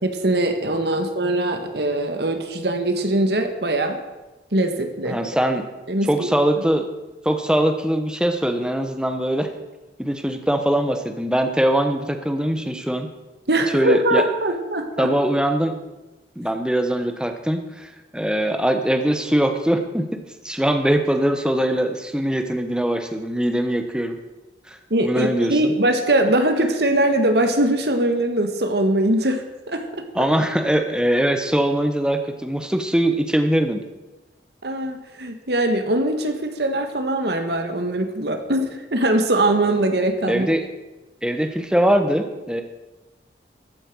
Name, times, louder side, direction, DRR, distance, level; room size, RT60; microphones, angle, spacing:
voice 1, 0.0-4.0 4.5-5.2 5.9-6.3 13.5-15.1 24.9-29.8 30.2-30.3 34.6-40.6, right 1 dB, 70° right, 6 dB, 1.7 m, -21 dB
voice 2, 5.1-5.6 6.1-6.8 7.2-9.5 10.0-13.1 13.7-14.2 15.0-15.7 16.4-20.2 20.4-24.2 24.7-24.8 25.0-25.7 30.1-33.8 40.3-40.6 41.2-42.6, right 1 dB, 5° right, 6 dB, 1.0 m, -21 dB
14.0 x 8.8 x 6.3 m, 1.1 s
head